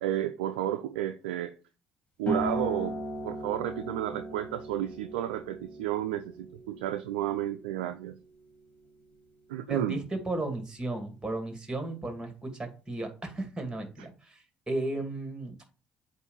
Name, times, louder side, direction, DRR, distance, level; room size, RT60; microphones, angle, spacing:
voice 1, 0.0-1.6 2.2-3.0 3.2-8.2 9.5-10.0, right 12 dB, 80° right, 0.4 m, -32 dB
sound 1, 2.3-9.4, equal, 25° left, 2.5 m, -38 dB
voice 2, 9.7-15.6, right 2 dB, 15° right, 2.1 m, -35 dB
7.9 x 2.6 x 5.4 m
hypercardioid pair, 55°, 5 cm